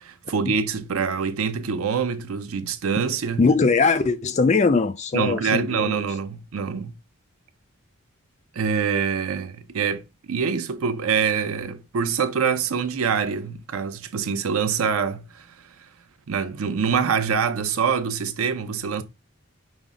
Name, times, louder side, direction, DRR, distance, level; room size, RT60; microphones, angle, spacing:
voice 1, 0.0-3.4 5.1-6.9 8.5-15.5 16.3-19.0, right 6 dB, 80° right, 0.5 m, -25 dB
voice 2, 3.4-6.0, left 4 dB, 30° left, 0.3 m, -21 dB
5.2 x 2.0 x 3.5 m
head